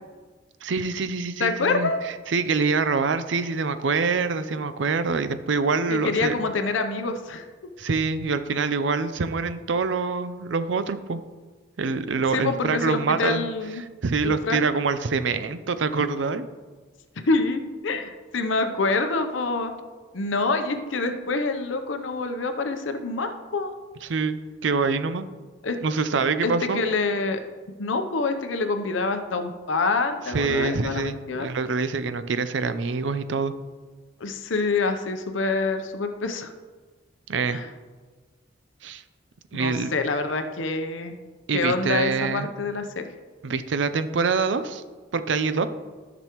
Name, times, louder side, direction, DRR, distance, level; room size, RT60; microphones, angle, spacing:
voice 1, 0.6-1.9 2.3-6.3 7.8-11.2 11.8-13.5 14.0-16.5 24.1-25.3 25.8-26.8 30.3-33.5 37.3-37.6 38.8-39.0 39.5-39.9 41.5-42.5 43.4-44.8 45.1-45.7, right 4 dB, 75° right, 12 dB, 0.5 m, -25 dB
voice 2, 1.4-2.0 5.9-7.5 12.3-13.8 14.2-14.6 17.2-19.7 20.1-23.7 25.6-25.8 26.4-27.4 27.8-31.5 34.2-36.5 37.5-37.7 39.5-41.2 41.5-43.1, left 3 dB, 85° left, 7 dB, 0.7 m, -26 dB
13.5 x 6.1 x 3.0 m, 1.4 s
head